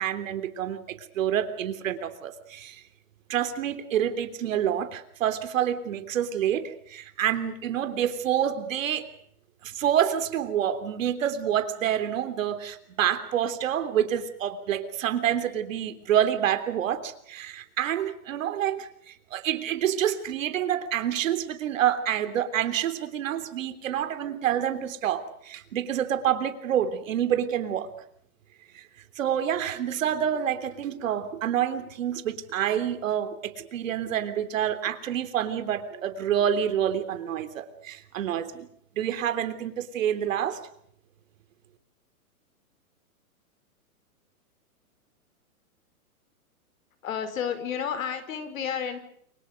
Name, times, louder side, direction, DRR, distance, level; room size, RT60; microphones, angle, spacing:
voice 1, 0.0-2.8 3.3-9.1 9.6-27.9 28.7-28.8 29.2-38.7 39.0-40.6, right 10 dB, 60° right, 9 dB, 3.5 m, -27 dB
voice 2, 47.0-49.0, left 8 dB, 60° left, 10 dB, 5.1 m, -31 dB
30.0 x 24.5 x 5.3 m, 0.69 s
hypercardioid pair, 150°, 44 cm